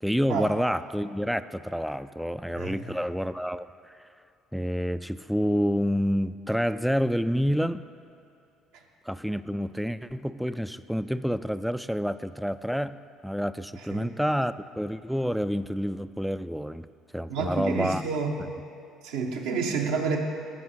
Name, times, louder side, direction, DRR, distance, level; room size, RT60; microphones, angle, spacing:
voice 1, 0.0-3.9 4.5-7.9 9.1-13.0 13.2-16.9 17.1-18.0 18.4-18.5, equal, ahead, 13 dB, 0.3 m, -28 dB
voice 2, 17.3-18.3 19.0-20.2, right 5 dB, 70° right, 1 dB, 0.8 m, -29 dB
13.5 x 4.7 x 5.6 m, 2.5 s
figure-of-eight pair, 55°, 0 cm